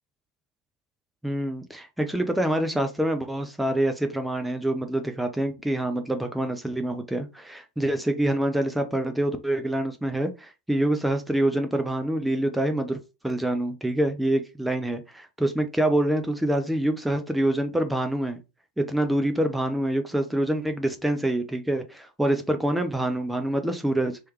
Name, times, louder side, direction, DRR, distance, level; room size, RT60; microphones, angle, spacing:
voice 1, 1.2-13.0 13.2-18.4 18.8-24.2, right 1 dB, 5° right, 0.5 m, -26 dB
3.2 x 3.1 x 3.0 m
figure-of-eight pair, 90°, 0 cm